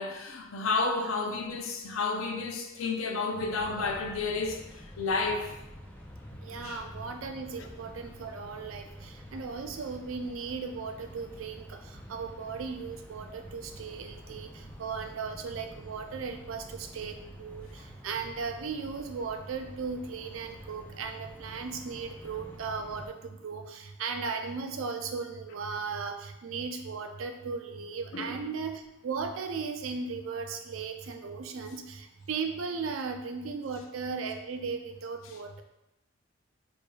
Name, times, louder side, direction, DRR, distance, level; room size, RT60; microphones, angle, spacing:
voice 1, 0.0-5.6 6.6-6.8 7.6-7.7 28.1-28.4, left 3 dB, 90° left, 0.5 m, -31 dB
sound 1, 3.4-23.1, equal, 10° left, 0.3 m, -49 dB
voice 2, 6.4-35.6, right 5 dB, 85° right, 0.4 m, -37 dB
4.8 x 2.6 x 2.3 m
head